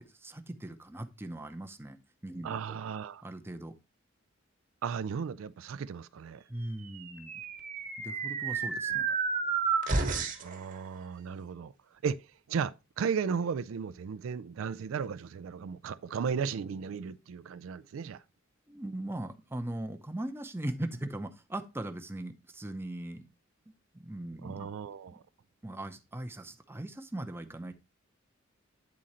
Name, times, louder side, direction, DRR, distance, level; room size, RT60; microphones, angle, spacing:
voice 1, 0.2-2.0 2.2-2.8 3.2-3.7 6.5-7.4 8.0-9.1 18.7-23.3 23.9-24.7 25.6-27.7, right 1 dB, 10° right, 0.6 m, -39 dB
voice 2, 2.4-3.2 4.8-6.4 10.4-11.7 12.0-12.2 12.5-18.2 24.4-25.2, right 6 dB, 75° right, 0.4 m, -35 dB
sound 1, 6.9-10.6, right 5 dB, 40° right, 1.1 m, -31 dB
8.6 x 3.8 x 4.1 m
head